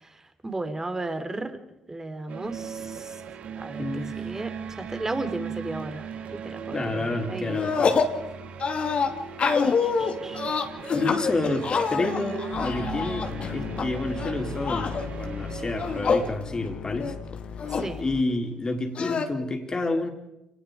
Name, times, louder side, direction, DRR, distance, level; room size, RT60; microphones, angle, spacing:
voice 1, 0.4-1.6 1.9-3.1 3.6-6.0 6.3-7.6 9.6-10.5 17.7-18.0, right 2 dB, 20° right, 8 dB, 3.7 m, -34 dB
sound 1, 2.3-16.3, right 7 dB, 60° right, 2.1 m, -38 dB
voice 2, 3.8-4.2 6.7-7.9 10.9-17.1 18.0-20.1, left 2 dB, 30° left, 4 dB, 4.5 m, -29 dB
sound 2, 7.5-8.2 8.6-13.8 14.2-15.1 15.7-16.3 16.7-16.8 17.0-17.9 19.0-19.2, left 5 dB, 50° left, 2.6 m, -26 dB
sound 3, 12.5-18.2, left 7 dB, 65° left, 1.4 m, -37 dB
29.0 x 19.5 x 5.2 m, 0.90 s
hypercardioid pair, 50°, 3 cm